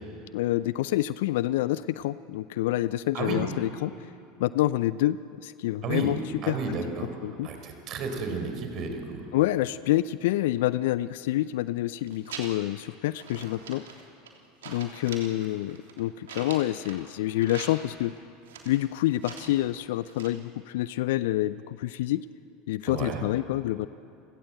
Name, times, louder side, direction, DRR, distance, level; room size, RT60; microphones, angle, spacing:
voice 1, 0.3-3.9 4.4-6.2 6.5-6.6 7.2-7.5 9.3-13.8 14.7-18.1 18.7-22.2 22.7-23.9, left 15 dB, 70° left, 16 dB, 0.5 m, -27 dB
voice 2, 6.4-7.1 7.4-9.2 22.9-23.2, right 4 dB, 50° right, 4 dB, 4.7 m, -32 dB
sound 1, 12.0-12.8 13.2-14.4 14.6-17.1 17.4-18.1 18.5-19.7 20.0-20.3, right 6 dB, 75° right, 3.3 m, -43 dB
30.0 x 16.5 x 7.9 m, 2.7 s
hypercardioid pair, 80°, 0 cm